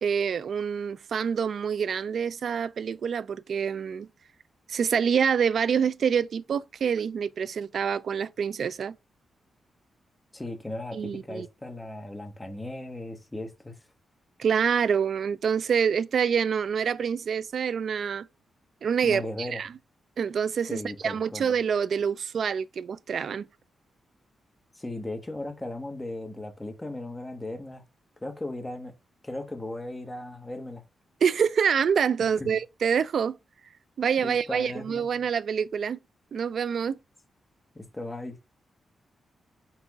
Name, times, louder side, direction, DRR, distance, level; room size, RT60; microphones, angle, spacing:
voice 1, 0.0-4.1 4.7-9.0 10.9-11.5 14.4-18.3 18.8-19.7 20.2-23.5 31.2-33.4 34.0-36.0 36.3-37.0, right 7 dB, 60° right, 0.4 m, -26 dB
voice 2, 10.3-13.8 19.0-19.6 20.7-21.5 24.7-27.8 28.2-28.9 29.2-30.8 32.4-32.6 34.2-35.0 37.7-38.4, left 1 dB, 10° left, 1.2 m, -37 dB
5.8 x 3.5 x 4.7 m
wide cardioid pair, 135°, 0 cm